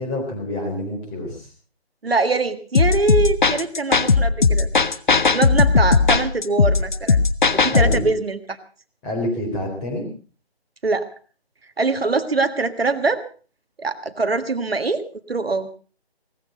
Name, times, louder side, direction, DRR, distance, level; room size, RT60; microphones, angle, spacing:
voice 1, 0.0-1.5 7.7-8.1 9.0-10.1, left 1 dB, 10° left, 1 dB, 4.0 m, -27 dB
voice 2, 2.0-4.7 5.2-7.2 7.5-8.6 10.8-11.1 11.8-13.2 13.8-15.7, right 3 dB, 70° right, 9 dB, 1.7 m, -23 dB
sound 1, 2.7-8.1, left 4 dB, 50° left, 1.1 m, -17 dB
18.0 x 14.5 x 5.2 m, 0.39 s
figure-of-eight pair, 155°, 31 cm